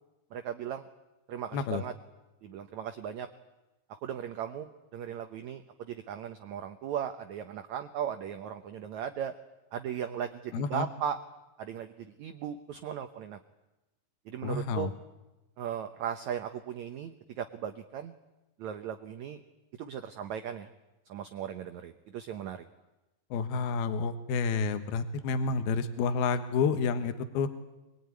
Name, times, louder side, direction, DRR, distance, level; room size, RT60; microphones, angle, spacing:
voice 1, 0.3-0.8 1.3-1.9 2.4-3.3 4.0-9.3 9.7-11.2 11.6-13.4 14.2-14.9 15.6-18.1 18.6-19.4 19.8-20.7 21.1-22.6, right 9 dB, 70° right, 8 dB, 1.8 m, -37 dB
voice 2, 10.5-10.9 14.4-14.9 23.3-27.5, left 5 dB, 75° left, 9 dB, 3.2 m, -29 dB
24.0 x 22.0 x 9.6 m, 1.0 s
omnidirectional pair, 4.5 m